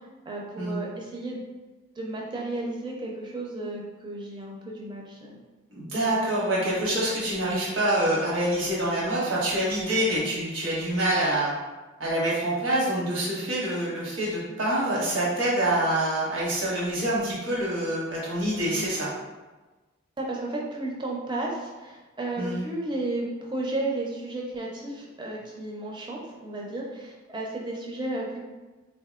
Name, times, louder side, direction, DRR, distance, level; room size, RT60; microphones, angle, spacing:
voice 1, 0.3-1.4 2.0-5.4 20.2-28.4, right 2 dB, 20° right, -2 dB, 0.5 m, -33 dB
voice 2, 5.7-11.5 12.0-19.1 22.4-22.6, right 1 dB, 75° right, -6 dB, 1.0 m, -26 dB
3.8 x 2.7 x 2.4 m, 1.2 s
head